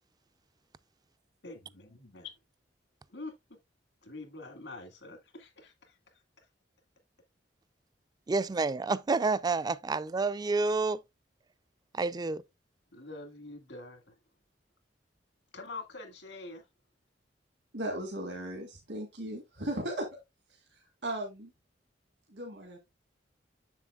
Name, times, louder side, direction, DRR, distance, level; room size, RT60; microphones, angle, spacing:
voice 1, 1.4-2.3 3.1-3.4 4.0-6.0 12.9-14.1 15.5-16.6, left 3 dB, 85° left, 1.9 m, -45 dB
voice 2, 8.3-11.0 11.9-12.4, right 3 dB, 20° right, 0.3 m, -29 dB
voice 3, 17.7-20.1 21.0-21.5 22.3-22.8, right 1 dB, 70° right, 1.7 m, -36 dB
7.4 x 7.0 x 2.3 m
head